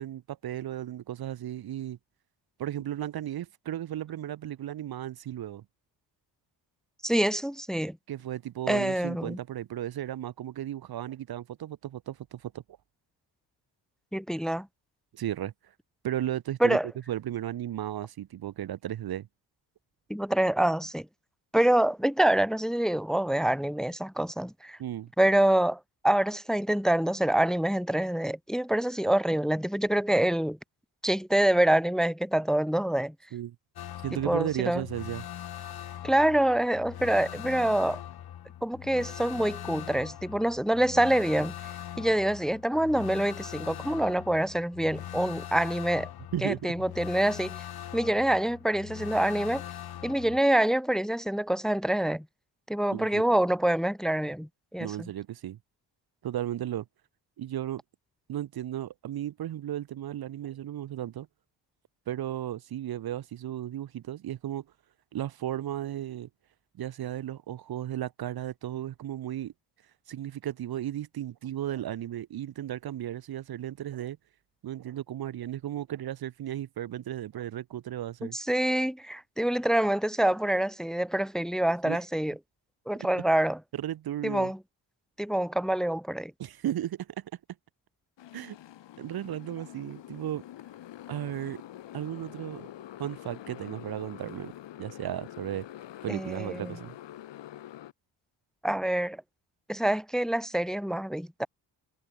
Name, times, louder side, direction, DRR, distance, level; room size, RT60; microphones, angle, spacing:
voice 1, 0.0-2.0 2.6-5.6 8.1-12.5 15.1-15.5 16.0-16.8 17.1-19.3 24.8-25.1 33.3-33.5 34.0-35.2 46.3-46.6 52.9-53.2 54.8-55.6 56.2-56.8 57.4-57.8 58.3-61.3 62.1-64.6 65.1-66.3 66.8-69.5 70.1-74.2 74.6-78.4 81.8-82.0 83.0-83.1 83.7-84.5 86.4-87.1 88.3-88.6 89.0-90.4 91.1-91.6 91.9-92.7 93.0-94.5 94.8-95.7 96.0-96.9, right 12 dB, 55° right, 1.1 m, -35 dB
voice 2, 7.0-8.0 8.7-9.4 14.1-14.7 16.6-16.9 20.1-21.1 21.5-24.8 25.2-30.6 31.0-33.1 34.2-34.8 36.0-38.0 38.6-41.5 42.0-46.1 46.4-47.6 47.9-49.6 50.0-52.2 52.7-55.1 78.2-82.4 82.9-83.6 84.2-84.6 85.2-86.3 96.1-96.8 98.6-99.2 99.7-101.5, right 1 dB, ahead, 1.0 m, -26 dB
sound 1, 33.8-50.4, left 11 dB, 55° left, 1.6 m, -41 dB
Motorcycle, 88.2-97.9, left 12 dB, 70° left, 3.3 m, -46 dB
cardioid pair, 130°, 44 cm